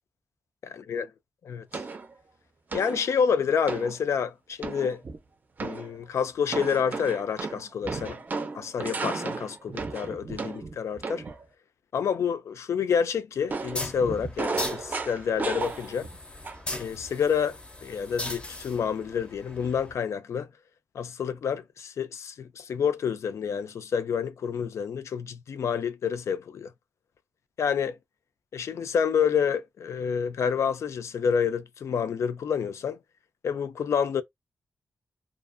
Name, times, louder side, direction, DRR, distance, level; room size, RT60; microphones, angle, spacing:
voice 1, 0.6-1.1 1.4-1.8 2.7-5.0 5.6-8.2 8.5-11.3 11.9-16.1 16.8-20.5 20.9-26.7 27.6-28.0 28.5-33.0 33.4-34.2, left 7 dB, 75° left, 0.3 m, -28 dB
sound 1, 1.7-2.1 2.7-3.1 3.7-4.0 4.6-5.2 5.6-6.0 6.5-11.4 13.5-16.2 16.4-16.8, right 4 dB, 35° right, 0.4 m, -34 dB
sound 2, 13.6-19.9, left 2 dB, 20° left, 0.5 m, -39 dB
2.4 x 2.4 x 2.4 m
wide cardioid pair, 150°, 5 cm